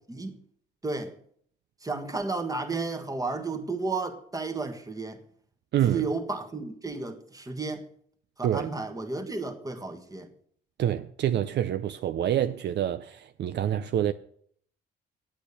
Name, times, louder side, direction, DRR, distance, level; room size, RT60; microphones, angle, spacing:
voice 1, 0.8-1.1 1.8-5.2 5.8-7.9 8.4-10.3, right 3 dB, 15° right, 1.5 m, -32 dB
voice 2, 5.7-6.0 8.4-8.7 10.8-14.1, right 11 dB, 60° right, 0.5 m, -27 dB
8.8 x 8.3 x 7.1 m
cardioid pair, 90°, 20 cm